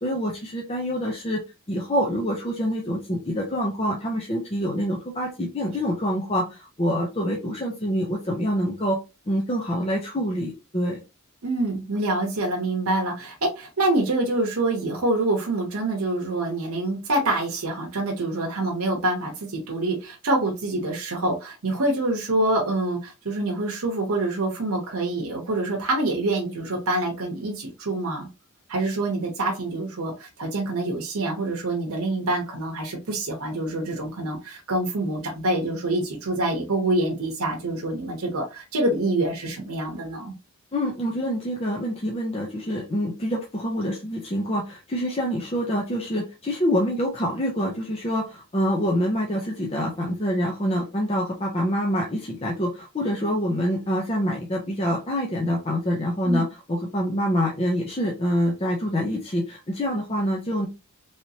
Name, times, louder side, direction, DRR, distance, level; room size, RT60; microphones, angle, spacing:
voice 1, 0.0-1.4 1.7-9.0 9.3-11.0 40.7-60.7, equal, 25° left, 0.6 m, -26 dB
voice 2, 11.4-28.3 28.7-40.3 56.2-56.4, right 2 dB, 75° right, 0.9 m, -26 dB
3.2 x 2.9 x 2.8 m
head